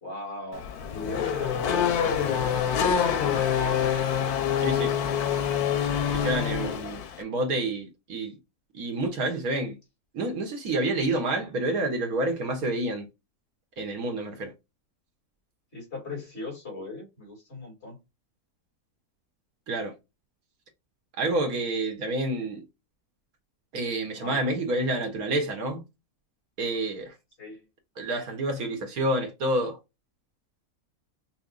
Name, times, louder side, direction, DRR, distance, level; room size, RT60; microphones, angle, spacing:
voice 1, 0.0-3.9 15.7-18.0 24.1-24.4 27.4-27.7, left 2 dB, 45° left, 2.5 m, -40 dB
Race car auto racing / Accelerating revving vroom, 0.5-7.2, left 8 dB, 90° left, 1.2 m, -26 dB
voice 2, 4.6-4.9 6.1-8.3 8.7-9.8 10.1-13.1 13.8-14.5 19.7-19.9 21.2-22.6 23.7-25.8 26.6-27.1 28.0-29.8, right 2 dB, 75° right, 1.6 m, -28 dB
5.7 x 2.3 x 2.5 m
omnidirectional pair, 1.6 m